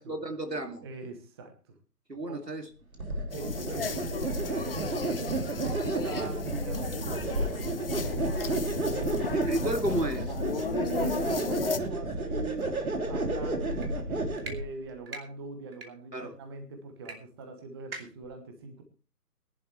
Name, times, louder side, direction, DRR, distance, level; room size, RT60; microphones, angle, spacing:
voice 1, 0.0-0.8 2.1-2.7 9.3-10.3 16.1-16.3, right 1 dB, 80° right, 2.7 m, -32 dB
voice 2, 0.8-1.8 2.3-2.4 3.3-9.4 10.8-12.7 13.1-18.8, right 3 dB, 15° right, 1.1 m, -42 dB
sound 1, 3.0-14.6, right 2 dB, 60° right, 3.2 m, -31 dB
sound 2, 3.3-11.8, left 5 dB, 35° left, 1.0 m, -36 dB
sound 3, 13.7-13.9 14.4-14.6 15.1-15.2 15.7-15.9 17.1-17.2 17.4-17.5 17.9-18.3, right 3 dB, 35° right, 2.8 m, -40 dB
19.5 x 11.5 x 3.2 m
figure-of-eight pair, 140°, 49 cm